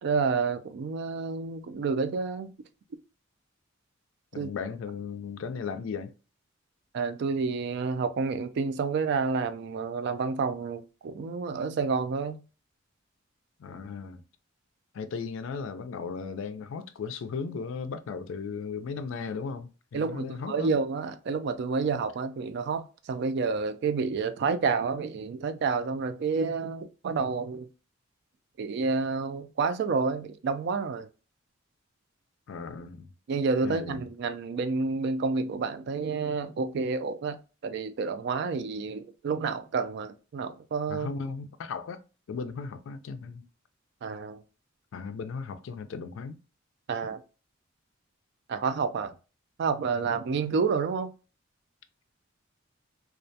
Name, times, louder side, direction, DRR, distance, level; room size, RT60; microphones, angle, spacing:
voice 1, 0.0-2.5 4.3-4.5 6.9-12.4 19.9-27.7 28.6-31.1 33.3-41.1 44.0-44.4 46.9-47.2 48.5-49.1 49.6-51.1, right 4 dB, 60° right, 0.3 m, -29 dB
voice 2, 4.3-6.1 13.6-14.2 14.9-20.7 32.5-33.1 33.6-34.1 40.9-42.0 42.3-43.4 44.9-46.4, left 5 dB, 75° left, 0.3 m, -36 dB
2.3 x 2.1 x 2.6 m
head